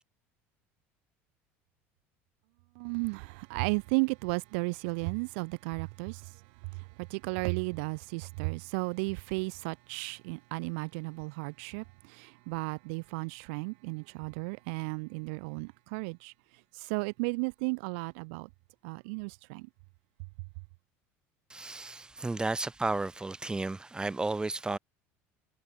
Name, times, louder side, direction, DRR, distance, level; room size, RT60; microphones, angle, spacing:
voice 1, 2.8-6.3 6.7-16.3 16.7-18.5 18.8-19.7, right 32 dB, 80° right, 0.4 m, -34 dB
voice 2, 21.5-24.8, right 3 dB, 15° right, 1.0 m, -33 dB
supercardioid pair, 90°, 6 cm